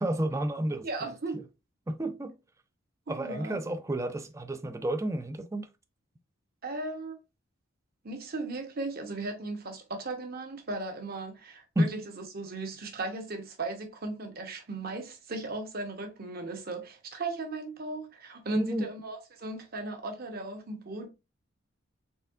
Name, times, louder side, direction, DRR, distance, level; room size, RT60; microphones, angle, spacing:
voice 1, 0.0-1.1 1.3-1.4 1.9-2.4 3.1-5.7 11.8-11.9 18.5-18.9, right 1 dB, 15° right, 0.3 m, -31 dB
voice 2, 0.8-1.4 3.1-3.6 6.6-7.2 8.0-21.1, right 2 dB, 45° right, 0.9 m, -37 dB
4.2 x 3.4 x 2.4 m
head